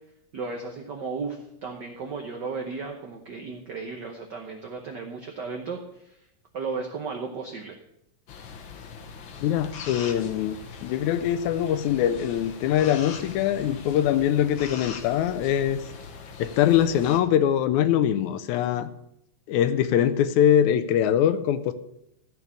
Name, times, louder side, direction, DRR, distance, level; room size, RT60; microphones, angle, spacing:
voice 1, 0.3-6.2 6.5-7.8, right 4 dB, 75° right, 3 dB, 1.0 m, -35 dB
sound 1, 8.3-17.2, left 6 dB, 60° left, 1.4 m, -41 dB
voice 2, 9.4-15.8 16.4-18.9 19.5-21.7, left 10 dB, 80° left, 12 dB, 2.0 m, -23 dB
14.0 x 4.7 x 8.3 m, 0.79 s
omnidirectional pair, 3.4 m